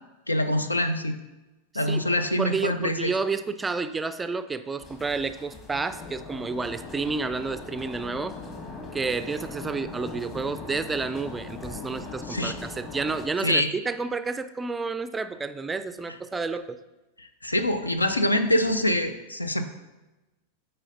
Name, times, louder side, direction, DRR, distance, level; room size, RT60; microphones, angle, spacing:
voice 1, 0.3-1.2 1.7-3.1 12.3-12.5 13.4-13.7 17.2-19.7, left 1 dB, 85° left, 10 dB, 0.5 m, -25 dB
voice 2, 2.4-8.4 8.9-16.8, right 4 dB, 15° right, 11 dB, 0.3 m, -30 dB
sound 1, 4.8-13.3, left 3 dB, 25° left, 1.4 m, -40 dB
8.9 x 4.3 x 3.8 m, 1.1 s
figure-of-eight pair, 90°, 0 cm